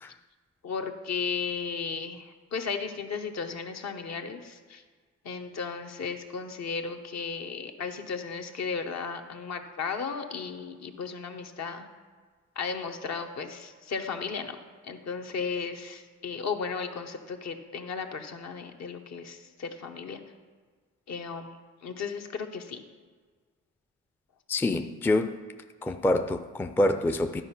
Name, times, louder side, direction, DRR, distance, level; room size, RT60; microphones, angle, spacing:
voice 1, 0.6-4.8 5.2-11.9 12.6-14.6 14.8-20.2 21.1-21.5 21.8-22.8, left 5 dB, 60° left, 5 dB, 1.0 m, -35 dB
voice 2, 24.5-25.4 25.8-27.4, left 1 dB, 5° left, 7 dB, 0.4 m, -26 dB
11.5 x 4.6 x 5.7 m, 1.5 s
cardioid pair, 90°, 30 cm